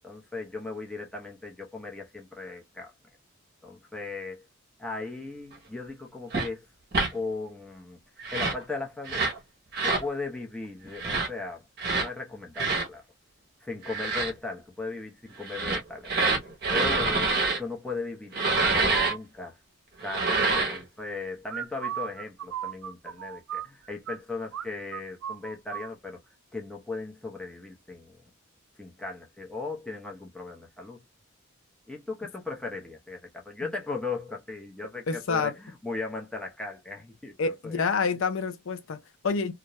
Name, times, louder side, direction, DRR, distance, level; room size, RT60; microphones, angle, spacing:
voice 1, 0.0-2.9 3.6-4.4 4.8-6.6 7.1-8.0 8.3-9.3 9.8-11.6 11.9-13.0 13.6-16.1 16.7-19.5 20.0-26.2 26.5-28.2 28.8-31.0 31.9-37.8, left 3 dB, 5° left, 0.6 m, -37 dB
sound 1, 6.3-6.5 6.9-7.1 8.2-8.6 9.1-9.4 9.7-10.1 10.9-11.3 11.8-12.1 12.6-12.9 13.8-14.3 15.4-17.6 18.3-19.1 20.0-20.8, right 3 dB, 45° right, 0.7 m, -26 dB
sound 2, 18.6-19.2 21.5-24.2 24.5-24.7 24.9-25.9, right 10 dB, 80° right, 0.3 m, -35 dB
voice 2, 35.1-35.6 37.4-39.5, left 5 dB, 65° left, 0.5 m, -28 dB
2.4 x 2.1 x 2.8 m
head